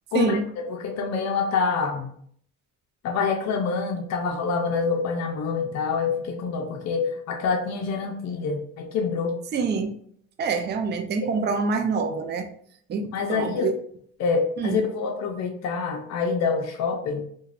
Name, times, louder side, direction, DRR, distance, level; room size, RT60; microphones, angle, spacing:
voice 1, 0.1-2.1 3.0-9.4 13.1-13.7 14.2-17.2, left 5 dB, 60° left, 2 dB, 0.5 m, -26 dB
voice 2, 9.5-10.0 10.4-12.5 12.9-13.7 14.6-14.8, right 5 dB, 35° right, 6 dB, 0.4 m, -26 dB
2.4 x 2.2 x 3.2 m, 0.63 s
cardioid pair, 90°, 30 cm